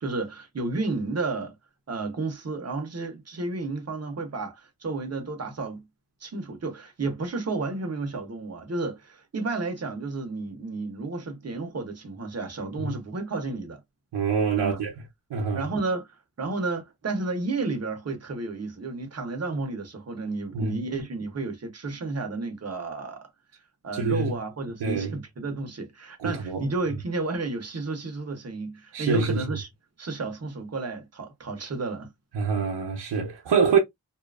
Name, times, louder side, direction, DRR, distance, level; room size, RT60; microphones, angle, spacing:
voice 1, 0.0-1.5 1.9-5.9 6.2-13.8 14.5-14.8 15.5-16.1 16.4-23.3 23.8-29.7 30.0-32.1, right 3 dB, 40° right, 0.7 m, -32 dB
voice 2, 14.1-14.9 15.3-15.7 20.5-20.8 23.9-24.3 24.8-25.2 26.2-26.6 28.9-29.4 32.3-33.8, right 5 dB, 80° right, 0.7 m, -25 dB
2.7 x 2.4 x 2.3 m
wide cardioid pair, 135°, 41 cm